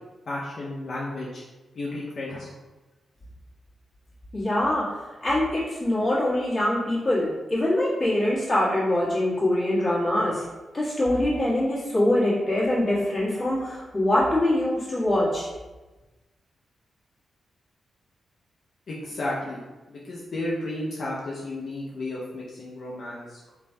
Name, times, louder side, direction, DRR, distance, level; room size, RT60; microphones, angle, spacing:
voice 1, 0.3-1.4 1.8-2.5 18.9-19.6 19.9-23.5, left 1 dB, 65° left, -5 dB, 0.5 m, -33 dB
voice 2, 4.3-4.8 5.2-10.4 10.7-15.5, left 1 dB, 40° left, -8 dB, 1.4 m, -23 dB
3.1 x 2.2 x 2.7 m, 1.1 s
supercardioid pair, 50°, 0 cm